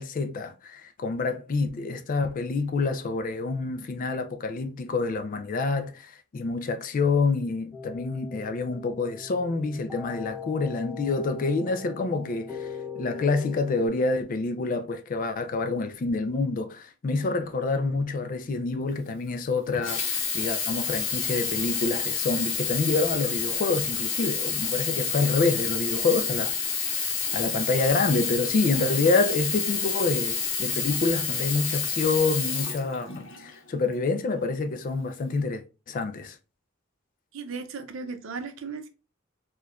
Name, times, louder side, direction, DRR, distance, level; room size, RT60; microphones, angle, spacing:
voice 1, 0.0-36.4, left 3 dB, 40° left, 0.3 m, -27 dB
sound 1, 7.7-13.9, left 6 dB, ahead, 0.6 m, -40 dB
Sink (filling or washing), 19.7-33.5 34.2-34.3, left 6 dB, 65° left, 0.9 m, -29 dB
voice 2, 37.3-38.9, right 4 dB, 65° right, 0.6 m, -36 dB
4.4 x 2.2 x 2.3 m
head